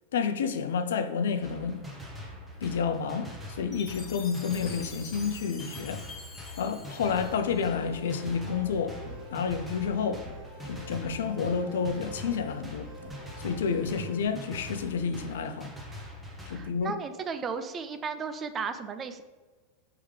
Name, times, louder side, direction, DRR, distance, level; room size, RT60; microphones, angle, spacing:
voice 1, 0.1-1.8 2.6-6.0 6.6-9.0 9.3-10.2 10.7-12.9 13.4-15.7 16.5-16.9, left 6 dB, 80° left, 0.4 m, -30 dB
sound 1, 1.4-16.7, left 1 dB, 10° right, 1.0 m, -43 dB
Chime, 3.7-8.0, left 4 dB, 30° left, 0.8 m, -46 dB
sound 2, 6.7-14.3, equal, 60° right, 0.9 m, -46 dB
voice 2, 16.5-19.2, right 5 dB, 30° right, 0.4 m, -35 dB
4.7 x 3.4 x 3.3 m
hypercardioid pair, 105°, 0 cm